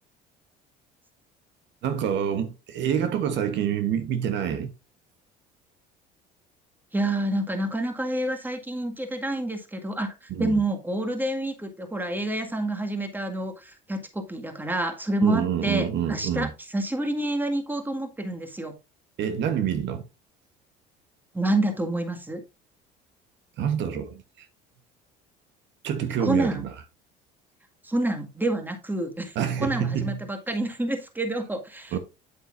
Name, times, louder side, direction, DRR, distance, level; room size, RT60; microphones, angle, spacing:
voice 1, 1.8-4.7 10.3-10.6 15.2-16.5 19.2-20.0 23.6-24.5 25.8-26.7 29.3-30.2 31.9-32.0, right 8 dB, 60° right, 1.2 m, -27 dB
voice 2, 6.9-18.7 21.3-22.4 26.2-26.6 27.8-32.0, right 1 dB, 10° right, 1.9 m, -28 dB
8.6 x 7.8 x 2.6 m
supercardioid pair, 80°, 21 cm